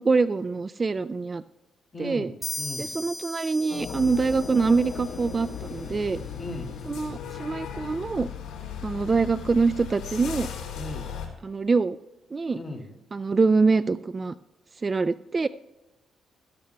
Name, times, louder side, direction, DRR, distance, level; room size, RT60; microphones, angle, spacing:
voice 1, 0.0-1.4 2.0-2.3 2.8-6.2 6.9-8.3 8.8-10.5 11.4-12.0 12.3-12.6 13.1-14.3 14.8-15.5, right 4 dB, 30° right, 15 dB, 0.3 m, -24 dB
voice 2, 1.9-2.9 6.4-6.7 10.7-11.1 12.5-12.9, left 2 dB, 25° left, 3 dB, 2.3 m, -37 dB
sound 1, 2.4-6.0, left 1 dB, 10° left, 2.3 m, -38 dB
sound 2, 3.7-9.6, left 7 dB, 60° left, 0.8 m, -39 dB
sound 3, 4.0-11.3, left 8 dB, 75° left, 2.9 m, -38 dB
17.0 x 13.5 x 2.2 m, 1.0 s
cardioid pair, 90°, 0 cm